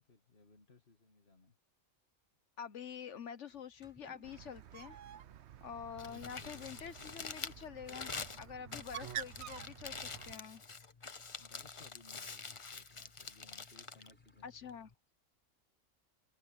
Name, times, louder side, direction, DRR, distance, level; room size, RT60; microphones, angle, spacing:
voice 1, 0.0-1.6 5.8-6.7 11.4-14.9, left 3 dB, 50° left, 2.4 m, -62 dB
voice 2, 2.6-5.0 5.6-10.6 14.4-14.9, left 7 dB, 70° left, 1.2 m, -47 dB
Toilet flush / Liquid, 3.5-15.1, left 1 dB, 10° left, 4.7 m, -72 dB
Bird, 4.2-10.3, right 10 dB, 65° right, 0.9 m, -49 dB
Crumpling crinkling, 5.8-14.9, left 4 dB, 30° left, 0.8 m, -47 dB
omnidirectional pair, 1.3 m